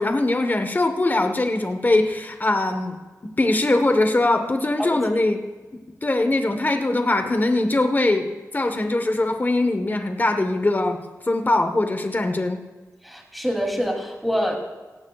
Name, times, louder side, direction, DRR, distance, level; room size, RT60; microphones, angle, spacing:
voice 1, 0.0-3.0 3.2-5.4 6.0-12.6, left 2 dB, 30° left, 7 dB, 1.2 m, -22 dB
voice 2, 13.0-14.6, equal, ahead, 1 dB, 3.0 m, -25 dB
18.0 x 15.5 x 2.4 m, 1.2 s
wide cardioid pair, 75°, 6 cm